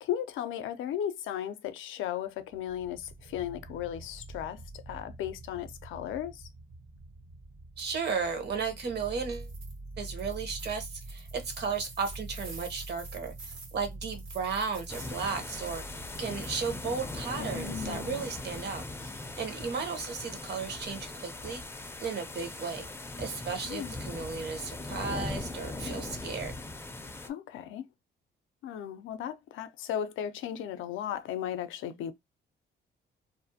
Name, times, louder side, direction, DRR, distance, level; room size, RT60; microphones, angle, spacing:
voice 1, 0.0-4.6 4.9-6.5 17.4-18.2 23.6-24.0 27.2-27.9 28.6-32.1, left 10 dB, 80° left, 0.4 m, -36 dB
sound 1, 2.4-19.7, right 2 dB, 35° right, 0.6 m, -46 dB
voice 2, 7.8-9.5 10.0-13.3 13.7-21.6 22.0-22.8 23.2-26.5, right 5 dB, 55° right, 0.9 m, -35 dB
sound 2, 9.2-9.7 10.1-16.8, right 3 dB, 75° right, 1.2 m, -49 dB
sound 3, 14.9-27.3, left 2 dB, 10° left, 0.4 m, -40 dB
2.5 x 2.0 x 2.7 m
cardioid pair, 90°, 20 cm